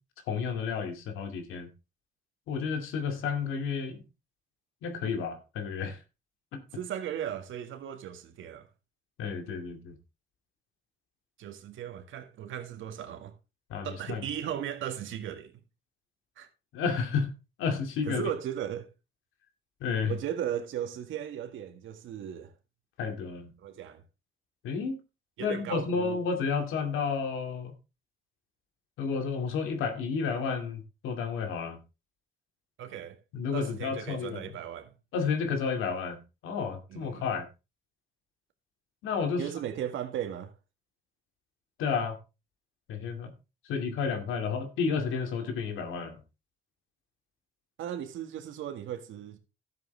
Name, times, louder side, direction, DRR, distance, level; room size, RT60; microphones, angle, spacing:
voice 1, 0.3-1.7 2.5-4.0 4.8-6.0 6.5-6.6 9.2-9.9 13.7-14.2 16.7-17.3 17.6-18.2 19.8-20.1 23.0-23.5 24.6-25.0 25.4-27.8 29.0-31.8 33.3-34.4 35.1-37.5 39.0-39.5 41.8-42.2 42.9-43.3 43.6-46.2, left 5 dB, 90° left, 2.4 m, -31 dB
voice 2, 6.7-8.7 11.4-13.3 13.8-15.6 16.4-16.5 18.1-18.9 20.1-22.5 23.6-24.0 25.4-26.2 32.8-33.2 33.5-35.0 36.9-37.3 39.4-40.5 47.8-49.4, right 10 dB, 80° right, 1.8 m, -36 dB
12.5 x 7.8 x 3.4 m
cardioid pair, 90°, 20 cm